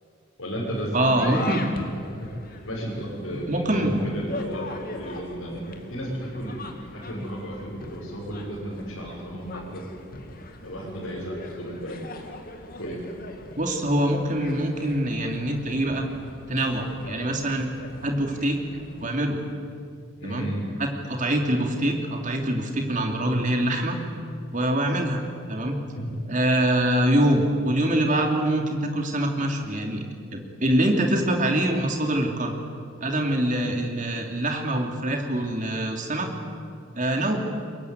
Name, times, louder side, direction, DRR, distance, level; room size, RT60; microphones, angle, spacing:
voice 1, 0.4-1.4 2.2-6.6 6.9-9.8 10.6-12.0 12.8-13.0 20.2-20.6 26.0-26.1, equal, 75° left, -7 dB, 6.2 m, -33 dB
sound 1, 0.7-19.1, left 2 dB, 45° left, 2.3 m, -41 dB
voice 2, 0.9-1.6 3.3-4.1 13.6-16.1 16.5-17.7 18.0-18.6 19.0-19.4 20.2-20.5 20.8-24.0 24.5-25.2 25.5-25.8 26.3-30.0 30.3-32.5 33.0-36.3 36.9-37.4, right 1 dB, 35° right, 3 dB, 2.9 m, -24 dB
23.0 x 22.0 x 9.5 m, 2.4 s
head